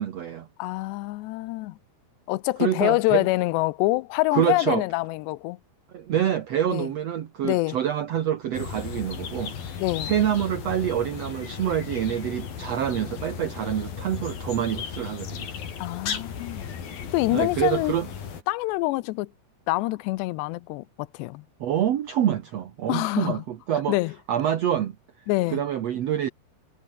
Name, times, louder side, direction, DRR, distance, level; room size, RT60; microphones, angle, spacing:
voice 1, 0.0-0.5 2.6-3.3 4.3-4.8 5.9-15.5 17.3-18.1 21.6-24.0 24.3-24.9 25.2-25.3 25.5-26.3, right 10 dB, 70° right, 1.5 m, -26 dB
voice 2, 0.6-1.8 2.3-5.6 6.7-6.9 7.4-7.8 9.8-10.1 15.8-16.7 17.1-17.9 18.5-19.3 19.7-21.4 22.9-23.4 23.9-24.1 25.3-25.6, left 20 dB, 85° left, 2.9 m, -26 dB
sound 1, 8.5-18.4, left 7 dB, 60° left, 5.1 m, -35 dB
omnidirectional pair, 4.9 m